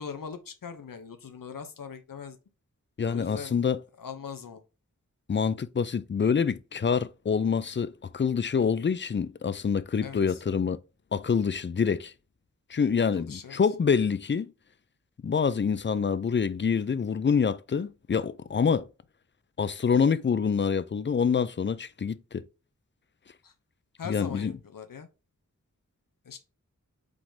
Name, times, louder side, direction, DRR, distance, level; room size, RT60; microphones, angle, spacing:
voice 1, 0.0-2.4 3.0-3.6 4.0-4.6 10.0-10.4 13.1-13.6 23.4-23.5 24.0-25.1 26.2-26.4, left 6 dB, 90° left, 0.7 m, -41 dB
voice 2, 3.0-3.8 5.3-10.8 11.1-12.1 12.7-14.5 15.2-18.9 19.6-22.4 24.1-24.5, left 6 dB, 35° left, 0.4 m, -26 dB
4.9 x 3.7 x 2.6 m
wide cardioid pair, 70°, 32 cm